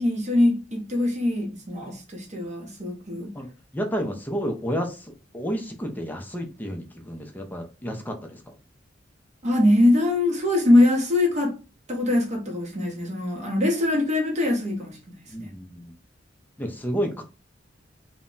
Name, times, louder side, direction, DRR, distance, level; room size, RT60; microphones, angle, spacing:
voice 1, 0.0-3.3 9.4-11.6 11.9-15.5, left 1 dB, 40° right, 0.7 m, -22 dB
voice 2, 3.7-8.4 15.3-15.9 16.6-17.2, equal, 10° left, 0.4 m, -31 dB
2.1 x 2.1 x 3.6 m
head